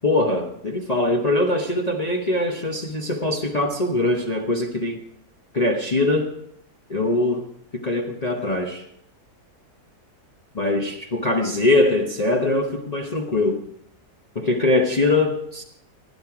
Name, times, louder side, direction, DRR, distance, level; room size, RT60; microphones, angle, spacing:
voice 1, 0.0-5.0 5.5-6.3 6.9-7.4 7.7-8.8 10.5-13.6 14.3-15.6, left 2 dB, 30° left, 1 dB, 1.0 m, -22 dB
16.5 x 10.5 x 4.9 m, 0.73 s
omnidirectional pair, 1.7 m